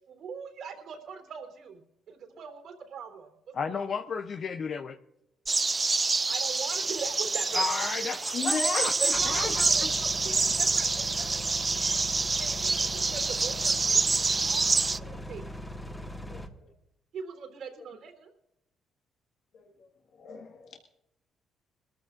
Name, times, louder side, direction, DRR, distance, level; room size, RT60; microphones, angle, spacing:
voice 1, 0.1-1.8 2.1-3.3 3.7-3.8 6.3-7.7 9.2-14.0 14.4-15.4 17.1-18.3, right 6 dB, 70° right, 4 dB, 3.4 m, -42 dB
voice 2, 3.5-5.0 7.5-9.6, left 5 dB, 55° left, 7 dB, 0.7 m, -34 dB
sound 1, 5.5-15.0, right 3 dB, 25° right, 0.4 m, -27 dB
voice 3, 8.3-8.9 9.2-9.5 15.0-15.2 16.3-16.4 19.5-19.6 20.2-20.8, left 5 dB, 70° left, 1 dB, 1.7 m, -33 dB
sound 2, 9.1-16.5, equal, 10° left, 1.7 m, -40 dB
22.0 x 14.5 x 2.6 m, 0.84 s
cardioid pair, 90°, 0 cm